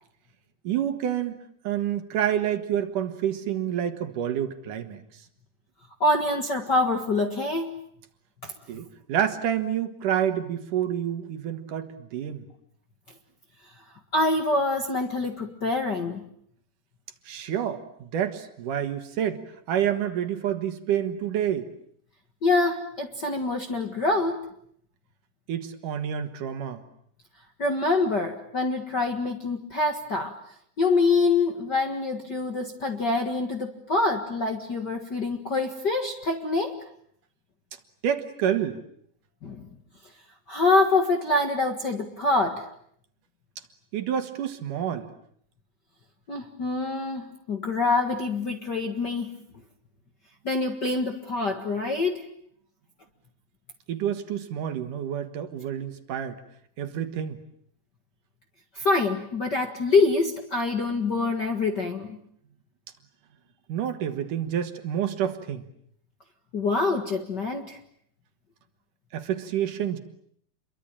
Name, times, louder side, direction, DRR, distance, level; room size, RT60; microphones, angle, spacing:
voice 1, 0.6-1.4 1.6-5.0 8.7-12.5 17.3-21.7 25.5-26.8 38.0-38.8 43.9-45.1 53.9-56.4 56.8-57.4 63.7-65.6 69.1-70.0, right 9 dB, 65° right, 8 dB, 3.0 m, -28 dB
voice 2, 6.0-7.7 8.4-8.5 14.1-16.3 22.4-24.5 27.6-30.4 30.8-36.8 39.4-39.7 40.5-42.7 46.3-49.4 50.4-52.2 58.7-62.2 66.5-67.8, left 3 dB, 40° left, 5 dB, 1.7 m, -25 dB
28.5 x 23.5 x 8.8 m, 0.68 s
omnidirectional pair, 4.2 m